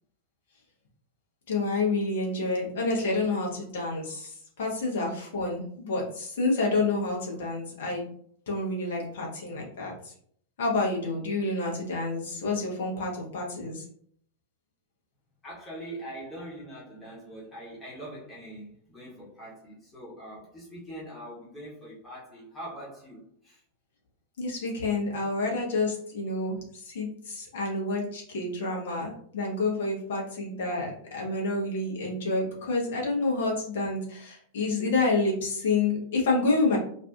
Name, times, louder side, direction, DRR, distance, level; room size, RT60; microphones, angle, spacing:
voice 1, 1.5-8.1 8.5-10.1 10.6-13.8 24.4-36.8, left 3 dB, 60° left, -3 dB, 0.9 m, -29 dB
voice 2, 15.4-23.6, right 1 dB, 15° left, -8 dB, 1.0 m, -43 dB
2.6 x 2.4 x 2.3 m, 0.63 s
figure-of-eight pair, 90°, 0 cm